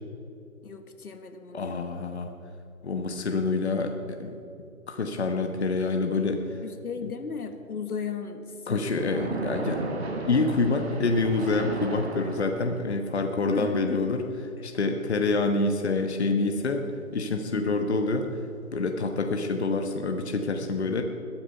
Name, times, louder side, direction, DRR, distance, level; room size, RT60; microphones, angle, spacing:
voice 1, 0.6-1.9 6.6-9.1 13.5-14.2 17.5-17.8, left 5 dB, 80° left, 8 dB, 1.7 m, -36 dB
voice 2, 1.5-2.3 2.8-4.3 4.9-6.6 7.0-7.1 8.7-9.8 10.3-14.2 14.6-16.9 17.1-18.3 18.7-21.0, left 3 dB, 50° left, 4 dB, 1.2 m, -27 dB
Splash splatter, 8.9-13.0, right 2 dB, 45° right, 1.7 m, -34 dB
21.0 x 8.8 x 5.6 m, 2.6 s
hypercardioid pair, 175°, 44 cm